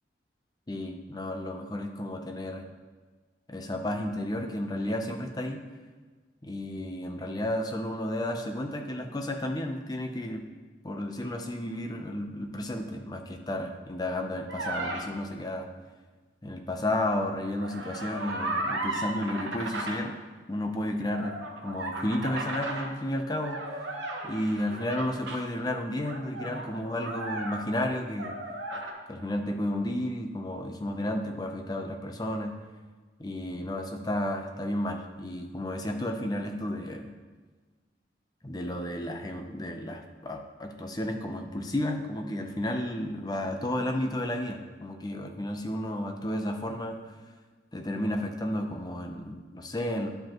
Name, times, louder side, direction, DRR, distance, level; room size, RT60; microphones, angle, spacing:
voice 1, 0.7-2.6 3.5-5.6 6.4-10.4 10.8-15.7 16.4-20.2 20.5-23.9 24.2-28.3 29.1-32.6 33.2-37.1 38.4-47.0 47.7-50.1, left 1 dB, 20° left, 4 dB, 0.6 m, -32 dB
sound 1, 14.5-15.0 17.4-20.0 21.1-22.9 23.4-25.4 26.0-27.9 28.2-28.9, right 2 dB, 80° right, 1.1 m, -35 dB
11.5 x 5.1 x 2.9 m, 1.4 s
head